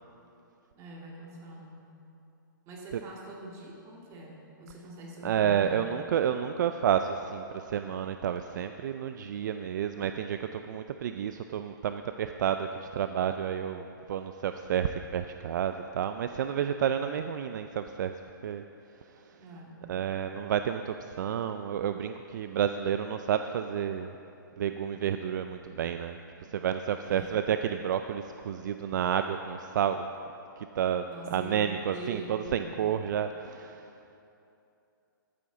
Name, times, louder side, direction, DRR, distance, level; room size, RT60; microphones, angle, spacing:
voice 1, 0.7-1.9 2.7-6.5 19.4-19.9 27.0-27.4 31.1-32.9, right 1 dB, 25° right, -2 dB, 2.1 m, -44 dB
voice 2, 5.2-18.1 18.4-18.6 19.1-19.4 19.9-24.2 24.6-30.1 30.6-31.1 31.3-33.9, right 9 dB, 60° right, 8 dB, 0.4 m, -30 dB
14.0 x 8.6 x 3.9 m, 2.8 s
hypercardioid pair, 140°, 11 cm